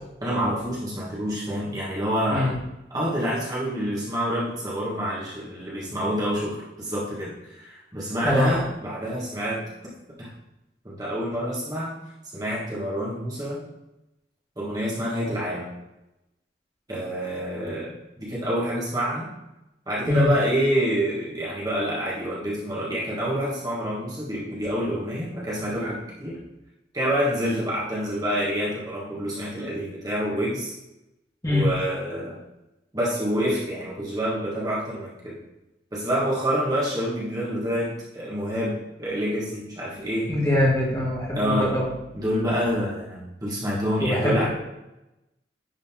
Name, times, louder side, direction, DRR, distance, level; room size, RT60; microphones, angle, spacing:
voice 1, 0.2-2.6 2.9-9.7 10.2-10.3 10.8-11.9 12.3-13.6 14.6-15.7 16.9-19.3 19.9-26.4 26.9-30.7 31.5-32.4 32.9-35.4 35.9-40.3 41.3-41.8 42.1-44.5, equal, 20° right, -6 dB, 1.7 m, -27 dB
voice 2, 40.3-41.9 44.0-44.5, left 1 dB, 20° left, -5 dB, 2.1 m, -23 dB
10.0 x 3.9 x 3.7 m, 0.94 s
head